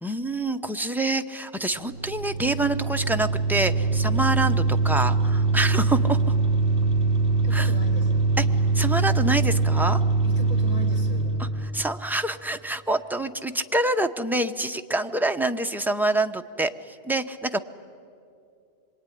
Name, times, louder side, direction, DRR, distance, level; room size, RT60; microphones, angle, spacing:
voice 1, 0.0-6.2 7.5-7.7 8.4-8.5 8.7-10.0 11.4-11.5 11.7-17.6, right 2 dB, ahead, 7 dB, 0.6 m, -26 dB
sound 1, 1.8-11.7, right 3 dB, 55° right, 2.1 m, -23 dB
voice 2, 7.4-8.3 10.2-11.7, left 1 dB, 30° left, 1 dB, 3.8 m, -39 dB
26.0 x 23.0 x 10.0 m, 2.5 s
omnidirectional pair, 1.1 m